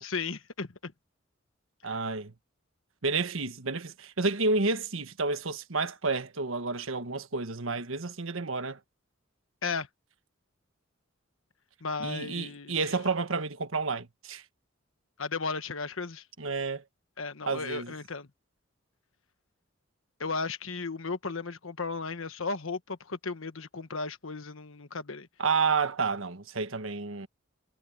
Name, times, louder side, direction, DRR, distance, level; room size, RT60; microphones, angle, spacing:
voice 1, 0.0-0.9 1.8-1.9 9.6-9.9 11.8-12.8 15.2-16.2 17.2-18.3 20.2-25.3, left 4 dB, 75° left, 1.3 m, -35 dB
voice 2, 1.8-2.3 3.0-8.8 12.0-14.4 16.4-16.8 17.5-17.9 25.4-27.3, right 4 dB, 80° right, 1.3 m, -30 dB
head